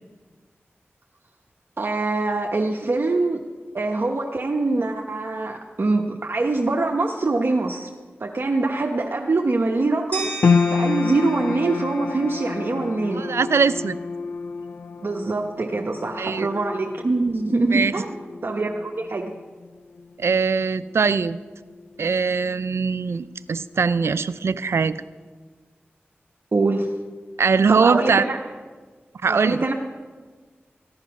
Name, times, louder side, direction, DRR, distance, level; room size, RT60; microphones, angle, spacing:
voice 1, 1.8-3.4 3.7-7.9 8.2-10.3 10.7-13.3 15.0-18.1 18.4-19.3 26.5-26.9 27.7-28.4 29.3-29.7, right 3 dB, 60° right, 0 dB, 1.0 m, -24 dB
sound 1, 10.1-13.0, right 3 dB, 35° left, 2.7 m, -36 dB
sound 2, 10.4-22.8 23.1-24.0 24.5-24.6, left 5 dB, 75° left, 0.4 m, -29 dB
voice 2, 13.1-14.0 16.2-16.5 17.7-17.9 20.2-21.4 22.0-25.0 27.4-28.2 29.2-29.6, right 5 dB, 80° right, 15 dB, 0.4 m, -21 dB
15.0 x 10.5 x 5.9 m, 1.4 s
cardioid pair, 45°, 4 cm